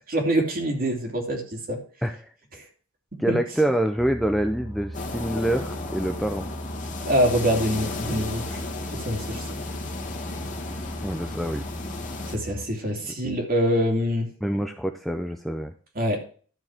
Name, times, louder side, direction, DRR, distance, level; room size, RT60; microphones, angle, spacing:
voice 1, 0.1-1.8 3.3-3.4 7.0-8.6 9.0-9.4 12.3-14.3 15.9-16.2, equal, 45° right, 2 dB, 2.7 m, -24 dB
voice 2, 3.2-6.5 11.0-11.6 14.4-15.7, right 1 dB, ahead, 5 dB, 0.6 m, -26 dB
sound 1, 4.0-12.7, right 1 dB, 20° right, 2.3 m, -37 dB
sound 2, 4.9-12.4, left 3 dB, 40° left, 2.0 m, -35 dB
12.5 x 4.7 x 5.9 m, 0.42 s
head